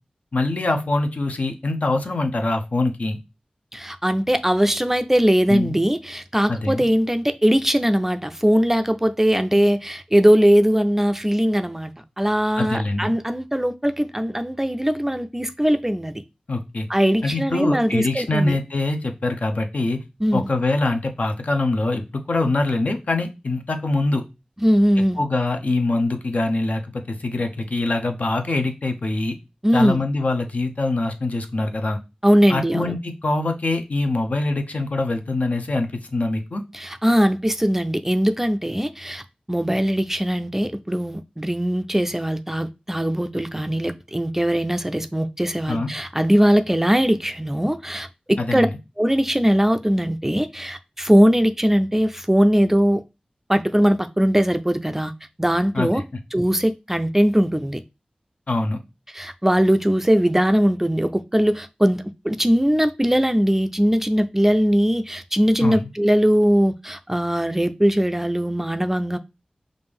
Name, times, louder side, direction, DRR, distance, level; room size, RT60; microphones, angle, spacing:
voice 1, 0.3-3.2 5.5-5.8 6.5-6.8 12.6-13.1 16.5-16.9 17.2-20.0 20.3-24.2 25.2-29.4 29.7-32.0 32.5-36.6 45.7-45.9 48.4-48.8 55.7-56.0 58.5-58.8 65.6-65.9, left 2 dB, 65° left, 0.6 m, -24 dB
voice 2, 3.7-16.2 16.9-18.6 20.2-20.5 24.6-25.2 29.6-30.0 32.2-33.0 36.7-39.2 39.5-48.7 49.0-53.0 53.5-55.1 55.4-56.0 56.3-57.8 59.1-69.2, equal, 15° right, 0.3 m, -20 dB
5.1 x 2.5 x 3.5 m
wide cardioid pair, 70°, 3 cm